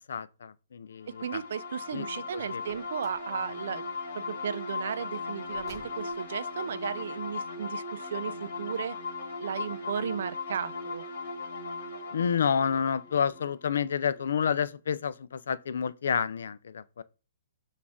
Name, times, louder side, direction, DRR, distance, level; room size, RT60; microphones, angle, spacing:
voice 1, 0.1-1.4 1.9-2.0 2.3-2.6 12.1-17.0, left 7 dB, 75° left, 0.3 m, -29 dB
sound 1, 1.1-14.6, left 3 dB, 55° left, 1.6 m, -38 dB
voice 2, 1.1-3.8 4.1-9.0 9.4-11.1, right 8 dB, 65° right, 0.3 m, -35 dB
Car, 2.6-3.3 5.4-6.3, left 4 dB, 20° left, 1.2 m, -53 dB
6.1 x 2.4 x 3.5 m
hypercardioid pair, 155°, 0 cm